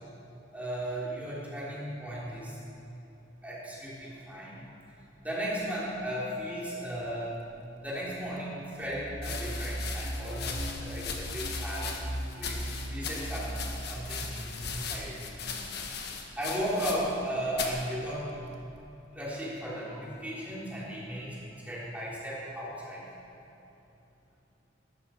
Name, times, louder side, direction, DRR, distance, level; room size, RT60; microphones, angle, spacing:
voice 1, 0.5-2.6 3.4-4.7 5.2-7.4 7.7-11.9 12.4-12.6 12.9-13.6 13.9-15.6 16.4-18.3 19.1-23.1, equal, 10° right, -8 dB, 3.9 m, -36 dB
sound 1, 8.8-15.4, right 1 dB, 40° right, 1.2 m, -38 dB
sound 2, 9.1-17.3 17.5-17.8 18.6-19.0, left 5 dB, 60° left, 1.4 m, -38 dB
15.0 x 12.5 x 4.7 m, 3.0 s
head